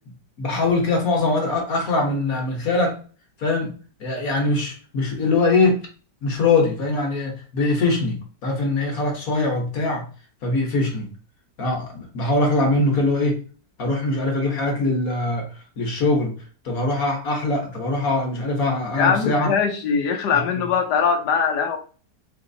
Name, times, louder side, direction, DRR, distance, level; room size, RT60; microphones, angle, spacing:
voice 1, 0.4-3.0 3.4-5.9 6.2-10.1 10.4-11.1 11.6-13.4 13.8-15.5 15.8-16.3 16.6-19.5 20.3-20.7, left 2 dB, 55° left, 1.6 m, -22 dB
voice 2, 19.0-21.8, left 6 dB, 75° left, 1.3 m, -21 dB
5.2 x 2.8 x 2.7 m
omnidirectional pair, 1.9 m